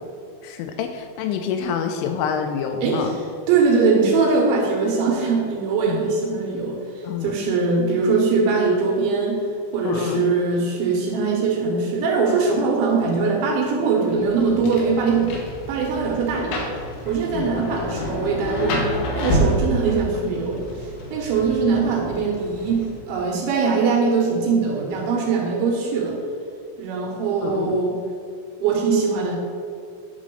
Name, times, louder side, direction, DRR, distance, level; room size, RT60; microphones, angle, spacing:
voice 1, 0.4-3.2 5.9-6.0 7.0-7.3 9.9-10.3 17.3-17.6 27.4-27.8, left 7 dB, 85° left, 5 dB, 3.0 m, -27 dB
voice 2, 2.8-15.4 15.7-16.7 17.1-26.2 26.8-28.0 28.6-29.3, right 4 dB, 75° right, -1 dB, 3.1 m, -22 dB
Rain, 14.1-23.2, equal, 70° left, 2.5 m, -29 dB
10.0 x 4.2 x 6.2 m, 2.3 s
omnidirectional pair, 6.0 m